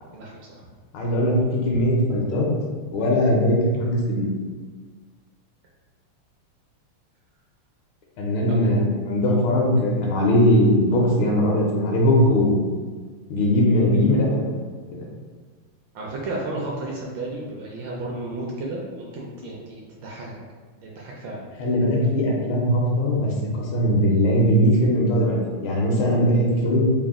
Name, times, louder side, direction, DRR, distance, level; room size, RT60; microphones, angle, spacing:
voice 1, 0.1-0.7 8.5-8.6 15.9-20.3 20.8-21.4, right 2 dB, 70° right, -3 dB, 1.2 m, -33 dB
voice 2, 0.9-2.5 2.9-4.3 8.2-12.6 13.3-14.5 14.9-15.0 21.6-26.8, equal, 75° left, -2 dB, 1.5 m, -20 dB
4.0 x 2.1 x 3.6 m, 1.5 s
omnidirectional pair, 2.4 m